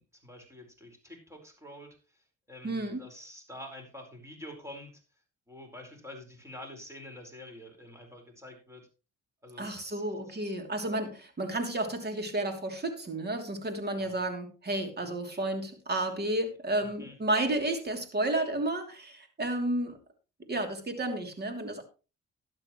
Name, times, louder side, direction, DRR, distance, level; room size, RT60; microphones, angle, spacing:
voice 1, 0.0-4.9 5.5-8.9 9.4-10.4 13.9-14.2 16.8-17.2, left 1 dB, 10° right, 3 dB, 4.7 m, -47 dB
voice 2, 2.6-3.0 9.6-20.0 20.5-21.8, right 1 dB, 35° right, 6 dB, 2.9 m, -32 dB
12.5 x 11.0 x 3.1 m, 0.31 s
cardioid pair, 90°, 30 cm